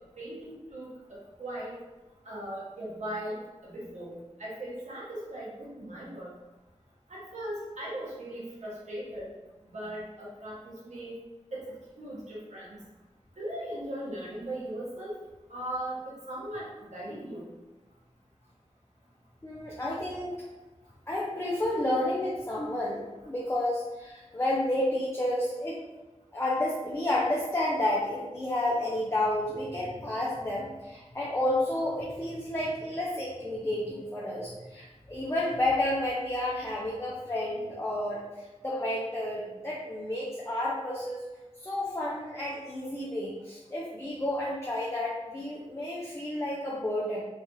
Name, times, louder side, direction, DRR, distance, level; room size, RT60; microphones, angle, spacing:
voice 1, 0.2-1.7 2.2-3.4 3.6-6.3 7.1-9.3 9.7-11.2 11.5-12.8 13.4-15.2 15.5-17.5, right 1 dB, 85° right, -6 dB, 0.9 m, -38 dB
voice 2, 19.4-20.4 21.1-25.8 26.3-38.2 38.6-41.2 41.6-47.2, left 1 dB, 20° left, -5 dB, 0.6 m, -31 dB
3.1 x 2.4 x 2.7 m, 1.1 s
wide cardioid pair, 50°, 12 cm